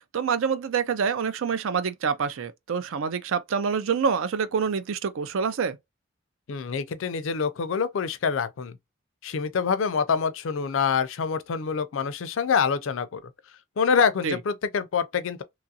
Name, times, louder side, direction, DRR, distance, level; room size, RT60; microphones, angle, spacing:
voice 1, 0.0-5.8 14.2-14.4, right 6 dB, 70° right, 0.4 m, -26 dB
voice 2, 6.5-8.8 9.2-13.3 13.8-15.4, left 6 dB, 65° left, 0.4 m, -26 dB
2.9 x 2.4 x 2.6 m
head